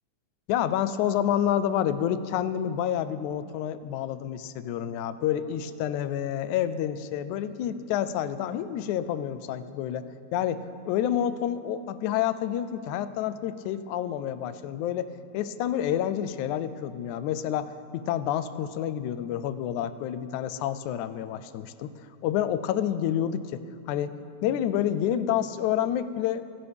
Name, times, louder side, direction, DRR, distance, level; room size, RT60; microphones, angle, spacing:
voice 1, 0.5-10.0 10.3-21.9 22.2-23.6 23.9-24.2 24.4-26.4, left 10 dB, 85° left, 13 dB, 2.0 m, -28 dB
25.5 x 11.0 x 3.5 m, 2.4 s
omnidirectional pair, 3.4 m